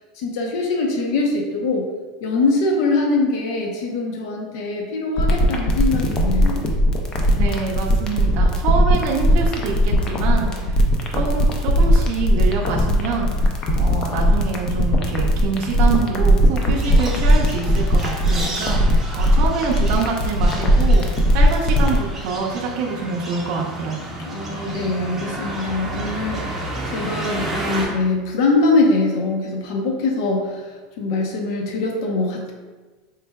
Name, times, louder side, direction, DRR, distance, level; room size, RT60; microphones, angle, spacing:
voice 1, 0.2-1.9 2.2-6.6 24.3-30.7 31.0-32.5, left 3 dB, 65° left, 0 dB, 0.7 m, -22 dB
sound 1, 5.2-22.0, equal, 30° left, 0.5 m, -17 dB
voice 2, 7.3-10.8 11.1-24.0, right 4 dB, 50° right, -2 dB, 0.6 m, -26 dB
sound 2, 16.7-27.8, right 2 dB, 10° right, 0.7 m, -32 dB
4.5 x 3.2 x 2.2 m, 1.3 s
supercardioid pair, 155°, 2 cm